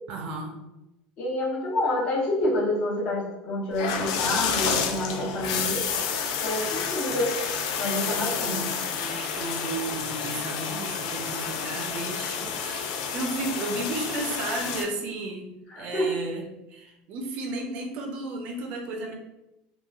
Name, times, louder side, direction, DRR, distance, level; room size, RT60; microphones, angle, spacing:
voice 1, 0.1-0.6 7.9-15.5 15.8-19.1, right 2 dB, 50° right, 2 dB, 0.5 m, -34 dB
voice 2, 1.2-5.9 6.4-7.3 7.8-8.6 15.7-16.1, left 1 dB, 45° left, -3 dB, 0.8 m, -28 dB
sound 1, 3.7-14.8, left 6 dB, 85° left, 0.3 m, -30 dB
3.0 x 2.3 x 2.3 m, 0.92 s
cardioid pair, 155°, 3 cm